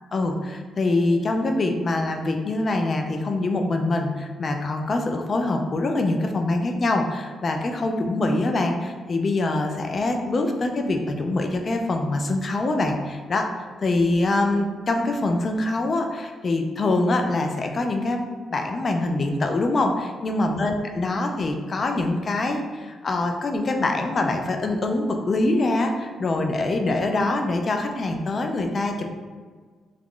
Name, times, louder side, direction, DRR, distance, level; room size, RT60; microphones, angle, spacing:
voice 1, 0.1-29.1, left 2 dB, 35° left, 4 dB, 0.3 m, -24 dB
2.9 x 2.4 x 3.7 m, 1.5 s
cardioid pair, 155°, 0 cm